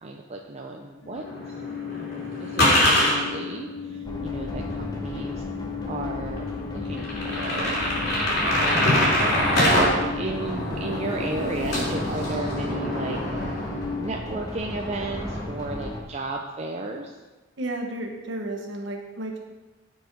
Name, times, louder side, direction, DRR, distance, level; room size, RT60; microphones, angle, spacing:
voice 1, 0.0-1.5 2.4-5.4 5.9-7.8 9.6-13.2 14.0-17.1, right 2 dB, 35° right, 1 dB, 0.5 m, -34 dB
sound 1, 1.0-14.1, left 6 dB, 75° left, 0.9 m, -36 dB
sound 2, 1.2-3.1 4.8-4.9 5.3-5.4 6.0-6.1 6.4-6.5 6.9-9.9 10.2-14.0 14.3-15.4, left 1 dB, 55° left, 3.0 m, -25 dB
sound 3, 4.0-16.0, left 1 dB, 20° left, 0.9 m, -35 dB
voice 2, 17.6-19.4, right 1 dB, 65° right, 1 dB, 1.3 m, -32 dB
9.0 x 4.7 x 5.3 m, 1.2 s
head